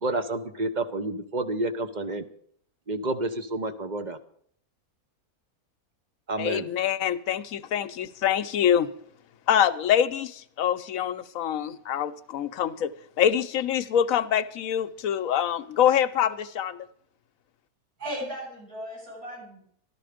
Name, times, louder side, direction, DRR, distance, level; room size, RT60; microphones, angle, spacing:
voice 1, 0.0-2.2 2.9-4.2 6.3-6.7, right 2 dB, 40° right, 8 dB, 0.7 m, -29 dB
voice 2, 6.4-8.9 9.5-12.9 13.2-16.9, left 9 dB, 70° left, 11 dB, 1.1 m, -25 dB
voice 3, 18.0-19.6, equal, 90° right, -5 dB, 7.6 m, -36 dB
13.5 x 12.5 x 5.0 m, 0.64 s
omnidirectional pair, 1.6 m